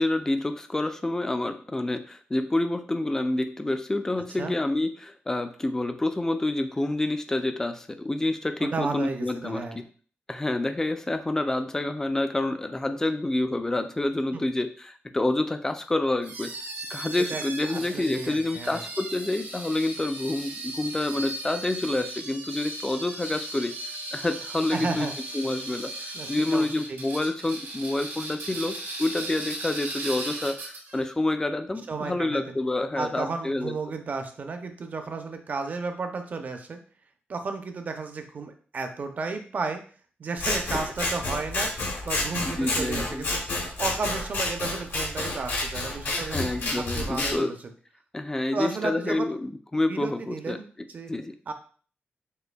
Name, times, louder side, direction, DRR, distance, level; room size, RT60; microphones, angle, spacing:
voice 1, 0.0-9.8 10.3-16.5 16.9-25.1 25.3-33.7 40.7-40.8 42.4-43.3 46.0-47.5 48.1-50.6 51.1-51.3, left 2 dB, 15° left, 8 dB, 0.3 m, -28 dB
voice 2, 8.6-9.8 14.3-14.4 17.2-18.8 24.7-25.1 26.1-27.0 31.9-32.5 33.0-36.8 37.3-39.8 40.2-41.7 42.0-43.4 43.8-46.4 46.8-47.7 48.5-49.3 49.9-51.1 51.5-51.6, right 4 dB, 40° right, 6 dB, 0.5 m, -33 dB
sound 1, 16.2-31.0, right 2 dB, 85° right, 1.7 m, -37 dB
Scissors, 40.4-47.3, left 2 dB, 65° left, 1.1 m, -29 dB
6.5 x 2.6 x 2.2 m, 0.43 s
wide cardioid pair, 165°, 4 cm